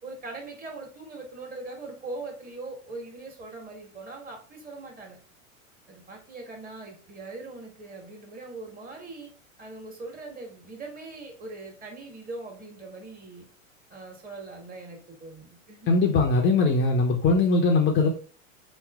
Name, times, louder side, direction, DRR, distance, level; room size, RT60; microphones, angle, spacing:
voice 1, 0.0-5.2 5.9-9.3 9.6-13.4 13.9-16.0, right 3 dB, 20° right, 1.8 m, -41 dB
voice 2, 15.9-18.1, left 3 dB, 30° left, 0.9 m, -21 dB
4.1 x 3.2 x 3.6 m
hypercardioid pair, 105°, 40 cm